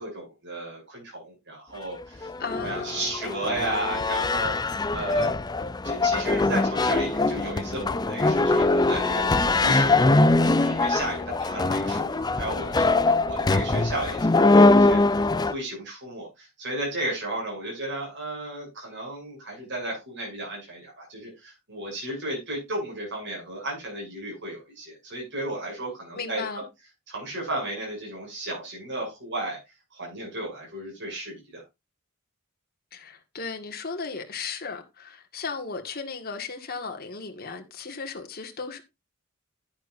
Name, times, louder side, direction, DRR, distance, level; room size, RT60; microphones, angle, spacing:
voice 1, 0.0-2.3 2.6-5.3 5.8-26.4 27.1-29.6 29.9-31.6, right 1 dB, 55° right, 7.3 m, -34 dB
sound 1, 2.0-15.5, left 2 dB, 20° left, 0.5 m, -22 dB
voice 2, 2.4-3.1 26.2-26.6 32.9-38.8, left 5 dB, 45° left, 1.8 m, -35 dB
10.5 x 10.5 x 2.6 m
head